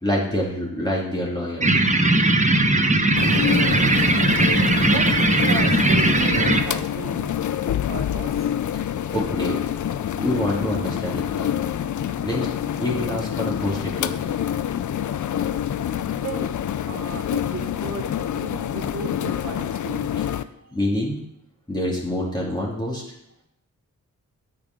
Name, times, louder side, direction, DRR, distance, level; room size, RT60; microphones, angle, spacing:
voice 1, 0.0-1.7 8.7-9.6 10.2-11.5 12.2-12.5 12.8-14.3 20.2-20.3 20.7-21.2 21.7-23.0, left 1 dB, 15° left, -4 dB, 2.4 m, -27 dB
sound 1, 1.6-6.6, right 2 dB, 20° right, 1.0 m, -19 dB
sound 2, 3.2-20.4, left 10 dB, 65° left, 0.5 m, -27 dB
voice 2, 4.8-7.3 7.6-8.5 16.2-16.5 16.8-20.1 20.6-20.8, right 4 dB, 55° right, 5 dB, 1.4 m, -35 dB
8.7 x 5.8 x 5.2 m, 0.77 s
cardioid pair, 55°, 33 cm